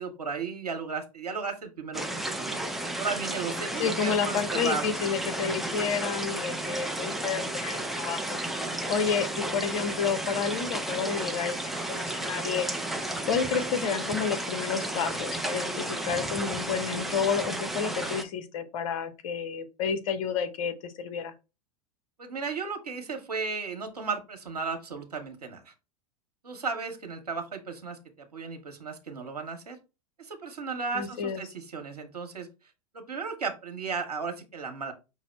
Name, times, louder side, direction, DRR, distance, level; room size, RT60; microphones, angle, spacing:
voice 1, 0.0-2.0 2.3-2.6 3.0-5.0 22.2-25.7 26.4-29.8 30.2-32.5 32.9-34.9, right 5 dB, 85° right, 4 dB, 0.9 m, -35 dB
sound 1, 1.9-18.2, right 1 dB, ahead, 0.5 m, -33 dB
voice 2, 3.8-8.4 8.9-12.7 13.2-21.3 30.9-31.4, left 6 dB, 55° left, 10 dB, 0.8 m, -30 dB
5.6 x 2.0 x 4.2 m, 0.28 s
figure-of-eight pair, 90°, 20 cm